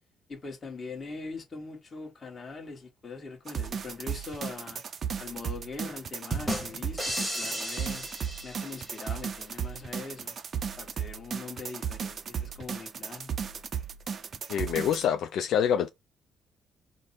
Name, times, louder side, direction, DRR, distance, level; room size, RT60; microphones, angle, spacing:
voice 1, 0.3-4.8 5.2-8.1 8.4-10.4 10.8-13.3, left 4 dB, 25° left, 1.2 m, -42 dB
sound 1, 3.5-15.0, right 7 dB, 40° right, 0.4 m, -35 dB
sound 2, 6.3-9.1, equal, 10° right, 1.0 m, -34 dB
voice 2, 14.5-15.9, left 8 dB, 65° left, 0.4 m, -26 dB
5.0 x 2.0 x 4.2 m
cardioid pair, 145°, 0 cm